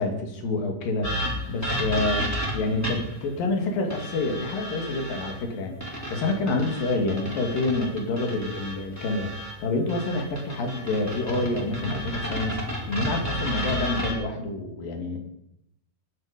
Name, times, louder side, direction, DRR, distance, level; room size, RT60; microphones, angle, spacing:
voice 1, 0.0-2.3 2.5-15.2, left 2 dB, 60° left, 3 dB, 3.9 m, -28 dB
sound 1, 1.0-3.2 3.9-5.3 5.8-9.5 9.9-14.1, equal, 5° left, 3.7 m, -32 dB
20.5 x 10.5 x 5.2 m, 0.80 s
omnidirectional pair, 4.7 m